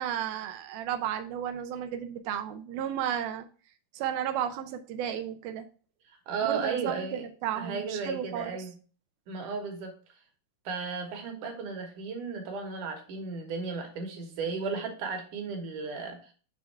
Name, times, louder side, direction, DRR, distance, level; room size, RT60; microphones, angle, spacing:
voice 1, 0.0-3.5 3.9-5.7 6.4-8.5, right 10 dB, 85° right, 6 dB, 1.8 m, -33 dB
voice 2, 6.3-7.3 7.5-8.7 9.3-9.9 10.7-16.3, right 5 dB, 65° right, 3 dB, 2.5 m, -34 dB
6.4 x 3.5 x 4.6 m, 0.39 s
omnidirectional pair, 4.2 m